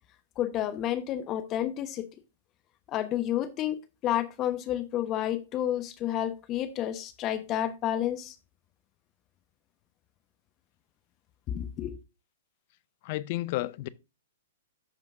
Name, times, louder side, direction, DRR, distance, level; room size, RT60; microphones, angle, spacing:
voice 1, 0.4-2.1 2.9-3.8 4.0-8.3 11.5-12.0, left 11 dB, 30° left, 1.0 m, -30 dB
voice 2, 13.0-13.9, left 17 dB, 45° left, 0.5 m, -31 dB
13.5 x 5.1 x 2.5 m
figure-of-eight pair, 115°, 0 cm